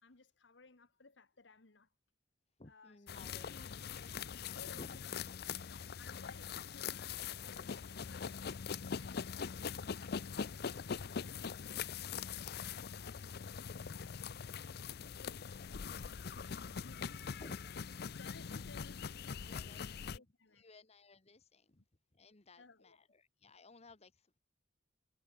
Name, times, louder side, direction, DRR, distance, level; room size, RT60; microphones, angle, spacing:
voice 1, 0.0-1.9 2.6-5.2 5.5-12.5 12.8-13.8 14.8-17.3 18.2-19.2 19.4-20.7 22.6-23.0, left 3 dB, 80° left, 1.6 m, -61 dB
voice 2, 2.6-4.2 4.6-5.0 5.4-5.5 7.6-7.7 17.2-17.6 19.4-20.2 20.6-21.8 22.1-24.4, left 2 dB, 35° left, 1.3 m, -57 dB
sound 1, 3.1-20.2, left 6 dB, 60° left, 0.5 m, -43 dB
head